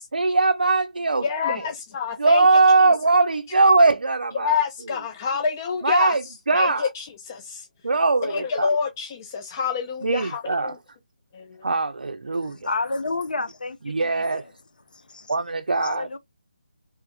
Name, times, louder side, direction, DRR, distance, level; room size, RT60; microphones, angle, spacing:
voice 1, 0.1-1.6 2.2-4.5 5.8-6.2 6.5-6.9 7.8-8.7 10.0-10.7 11.6-12.6 13.9-14.4 15.3-16.1, right 3 dB, 85° right, 0.4 m, -20 dB
voice 2, 1.2-2.4 2.8-2.9 4.3-7.7 8.2-10.8 11.3-11.6, left 6 dB, 25° left, 0.4 m, -27 dB
voice 3, 12.3-14.5 14.9-15.3 15.8-16.2, left 3 dB, 75° left, 0.7 m, -31 dB
3.4 x 3.0 x 2.2 m
figure-of-eight pair, 155°, 5 cm